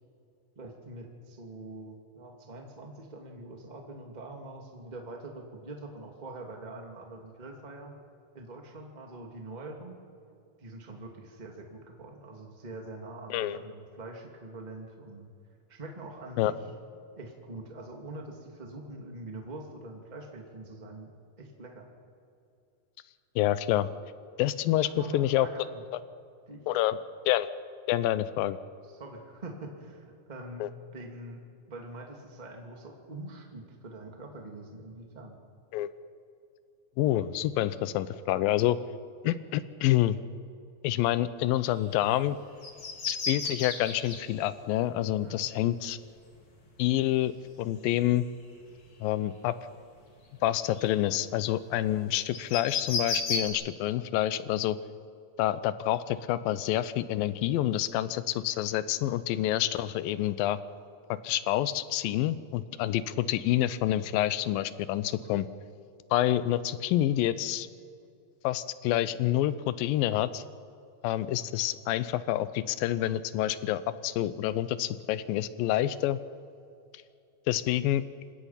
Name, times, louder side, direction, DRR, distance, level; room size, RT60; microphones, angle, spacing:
voice 1, 0.6-8.0 8.3-10.0 10.6-15.3 15.7-16.6 17.2-21.9 24.7-25.8 26.5-26.7 28.9-30.7 30.9-31.4 31.7-35.4 45.2-45.5, right 2 dB, 15° right, 1 dB, 1.7 m, -44 dB
voice 2, 23.4-23.9 24.4-24.9 25.1-25.5 26.7-27.0 27.3-27.5 27.9-28.6 30.6-30.7 35.7-35.9 37.0-38.8 39.2-40.2 40.8-42.4 43.1-46.0 46.8-47.3 47.6-48.2 49.0-49.5 50.4-54.8 55.4-60.6 61.1-65.5 66.1-67.7 68.4-70.4 71.0-76.2 77.5-78.0, left 13 dB, 80° left, 15 dB, 2.3 m, -27 dB
sound 1, 41.7-42.0 42.4-44.2 45.9-46.0 47.9-48.4 48.8-49.2 49.7-49.9 50.2-51.2 52.3-53.5, left 4 dB, 35° left, 2.8 m, -33 dB
28.0 x 16.5 x 5.8 m, 2.5 s
omnidirectional pair, 4.4 m